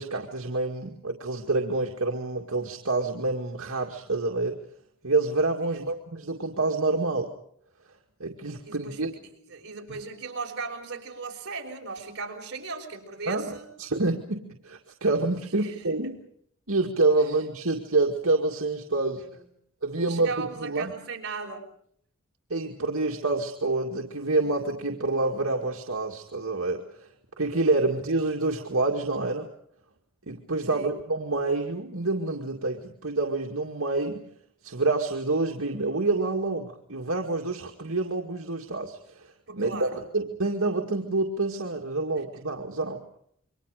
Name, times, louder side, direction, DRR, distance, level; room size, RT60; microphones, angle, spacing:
voice 1, 0.0-4.6 5.0-7.3 8.2-9.1 13.3-16.1 16.7-19.2 19.8-20.9 22.5-27.1 27.4-29.5 30.3-34.3 34.6-43.0, right 2 dB, 75° right, 1 dB, 2.1 m, -27 dB
voice 2, 8.6-13.7 15.5-16.2 19.1-19.4 20.0-21.6 30.7-30.9 39.5-40.0 42.3-42.5, right 4 dB, 55° right, 1 dB, 5.9 m, -38 dB
28.5 x 24.0 x 5.0 m, 0.66 s
head